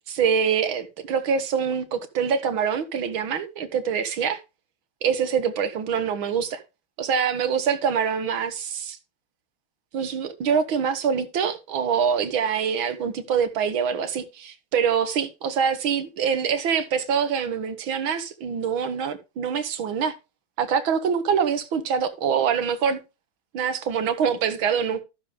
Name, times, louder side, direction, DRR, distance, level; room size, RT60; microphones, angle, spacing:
voice 1, 0.1-4.4 5.0-6.6 7.0-9.0 9.9-20.1 20.6-23.0 23.5-25.0, right 7 dB, 65° right, 2.1 m, -25 dB
14.0 x 6.9 x 3.5 m
omnidirectional pair, 2.4 m